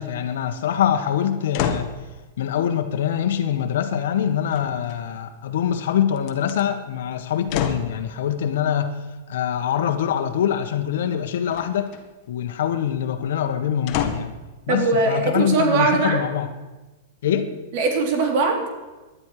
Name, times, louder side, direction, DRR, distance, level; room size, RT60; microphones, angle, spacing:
voice 1, 0.0-1.9 2.4-11.9 12.3-14.3 14.7-16.5 17.2-17.5, left 9 dB, 70° left, 8 dB, 1.5 m, -24 dB
sound 1, 1.5-2.0 4.5-5.2 6.2-6.6 7.5-8.0 11.5-12.0 13.9-14.4 15.1-15.2, left 8 dB, 40° left, 1.6 m, -28 dB
voice 2, 14.7-16.2 17.7-18.7, right 3 dB, 50° right, 3 dB, 3.5 m, -20 dB
19.0 x 11.5 x 5.0 m, 1.2 s
supercardioid pair, 145°, 0 cm